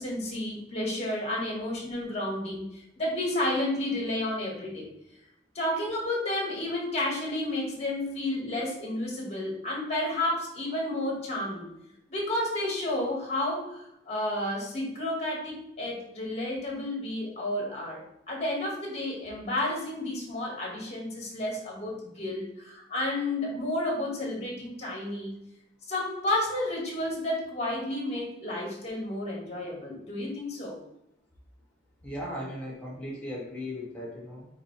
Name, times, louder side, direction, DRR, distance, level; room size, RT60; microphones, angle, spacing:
voice 1, 0.0-2.6 3.0-4.9 5.5-11.7 12.1-13.8 14.1-25.3 25.9-30.8, left 1 dB, 40° left, -2 dB, 2.2 m, -31 dB
voice 2, 32.0-34.5, left 1 dB, 5° left, -6 dB, 1.7 m, -37 dB
5.7 x 4.8 x 3.5 m, 0.82 s
head